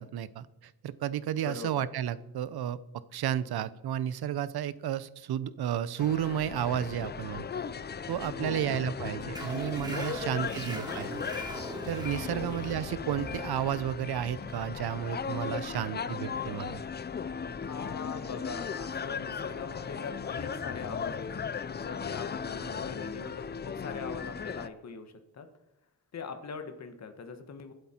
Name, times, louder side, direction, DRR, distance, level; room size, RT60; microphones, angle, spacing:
voice 1, 0.0-2.8 3.1-7.5 8.1-11.2 11.9-16.8, right 10 dB, 85° right, 16 dB, 0.8 m, -32 dB
voice 2, 1.4-1.9 8.3-8.7 10.1-10.8 12.1-12.5 17.6-21.4 21.7-25.5 26.1-27.7, left 5 dB, 45° left, 7 dB, 1.3 m, -42 dB
sound 1, 6.0-24.7, left 6 dB, 30° left, 0.5 m, -37 dB
sound 2, 9.3-16.5, right 1 dB, 10° right, 2.0 m, -42 dB
23.0 x 8.1 x 4.4 m, 0.91 s
wide cardioid pair, 130°, 37 cm